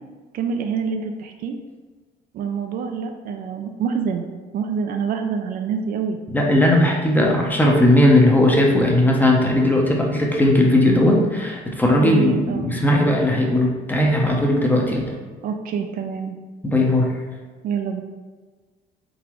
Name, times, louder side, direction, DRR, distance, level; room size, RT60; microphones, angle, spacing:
voice 1, 0.3-1.6 2.3-4.3 4.5-6.2 12.0-12.7 15.4-16.4 17.6-18.0, right 6 dB, 60° right, 5 dB, 0.4 m, -26 dB
voice 2, 6.3-15.1 16.6-17.2, left 1 dB, 10° left, -1 dB, 0.7 m, -17 dB
3.9 x 3.7 x 3.0 m, 1.4 s
cardioid pair, 110°, 17 cm